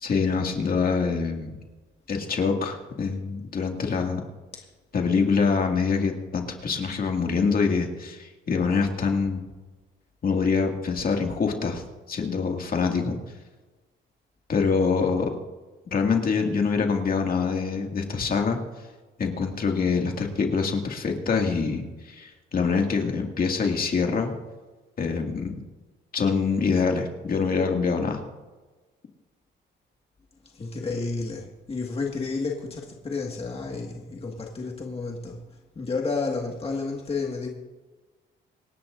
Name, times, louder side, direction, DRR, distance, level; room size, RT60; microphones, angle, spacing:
voice 1, 0.0-1.6 2.1-4.2 4.9-9.4 10.2-13.2 14.5-15.3 15.9-18.6 19.2-24.3 25.0-25.6 26.1-28.2, left 5 dB, 45° left, 2 dB, 2.2 m, -25 dB
voice 2, 30.5-35.4 35.8-37.5, left 4 dB, 30° left, 0 dB, 1.8 m, -31 dB
27.0 x 10.5 x 2.6 m, 1.2 s
cardioid pair, 90°, 20 cm